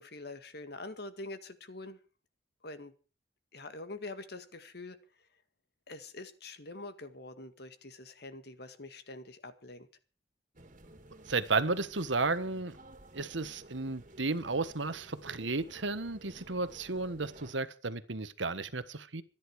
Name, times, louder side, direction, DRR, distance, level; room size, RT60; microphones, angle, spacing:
voice 1, 0.0-2.0 2.6-2.9 3.5-5.0 5.9-9.9, left 2 dB, 60° left, 2.0 m, -45 dB
sound 1, 10.5-17.5, right 1 dB, 40° right, 2.5 m, -54 dB
voice 2, 11.3-12.8 13.1-19.2, right 3 dB, 80° right, 1.4 m, -33 dB
25.0 x 10.5 x 4.8 m
head